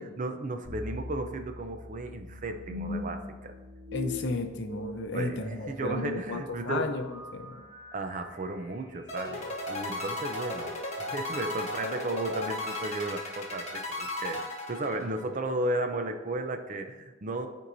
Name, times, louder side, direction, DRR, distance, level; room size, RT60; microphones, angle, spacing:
voice 1, 0.0-3.5 5.1-7.0 7.9-17.5, right 2 dB, 40° right, 6 dB, 0.5 m, -34 dB
sound 1, 0.6-9.8, left 2 dB, 20° right, 1.9 m, -42 dB
voice 2, 3.9-7.1 7.3-7.6, left 3 dB, 60° left, 5 dB, 0.7 m, -33 dB
sound 2, 9.1-15.4, left 2 dB, 35° left, 1.2 m, -36 dB
13.0 x 4.6 x 2.6 m, 1.2 s
head